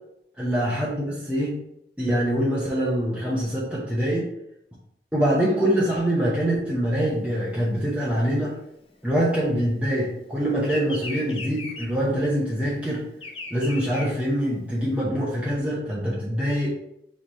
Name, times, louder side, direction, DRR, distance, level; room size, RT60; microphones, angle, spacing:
voice 1, 0.4-1.6 2.0-4.3 5.1-8.5 9.0-13.0 13.5-16.7, equal, 5° right, -7 dB, 0.8 m, -24 dB
Bird vocalization bird call bird song, 7.0-9.9 10.2-14.9, left 3 dB, 30° left, 0.5 m, -39 dB
3.9 x 3.2 x 4.0 m, 0.79 s
head